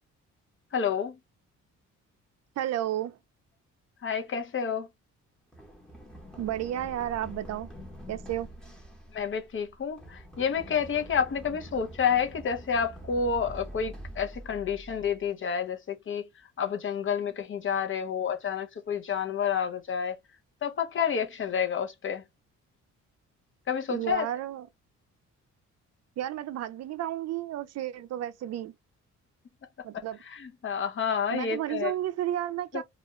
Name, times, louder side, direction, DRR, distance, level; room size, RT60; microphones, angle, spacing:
voice 1, 0.7-1.2 4.0-4.9 9.1-16.3 16.6-20.2 20.6-22.2 23.7-24.3 29.9-31.9 32.7-32.8, left 7 dB, 40° left, 0.7 m, -29 dB
voice 2, 2.6-3.2 6.4-7.7 8.1-8.5 23.9-24.7 26.2-28.7 29.8-30.2 31.3-32.8, right 12 dB, 60° right, 0.5 m, -32 dB
Run, 5.5-15.3, right 1 dB, ahead, 0.9 m, -45 dB
2.4 x 2.1 x 3.0 m
cardioid pair, 90°, 30 cm